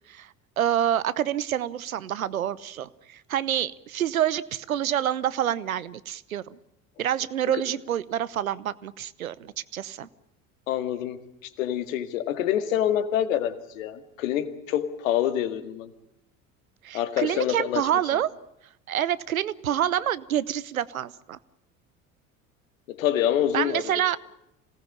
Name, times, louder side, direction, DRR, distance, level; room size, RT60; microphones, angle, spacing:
voice 1, 0.6-6.6 7.0-10.1 16.8-18.3 18.9-21.4 23.5-24.2, right 10 dB, 85° right, 19 dB, 0.9 m, -27 dB
voice 2, 10.7-11.2 11.6-15.9 16.9-17.8 22.9-23.9, left 10 dB, 75° left, 10 dB, 2.2 m, -26 dB
27.0 x 18.5 x 8.7 m, 0.83 s
hypercardioid pair, 65°, 40 cm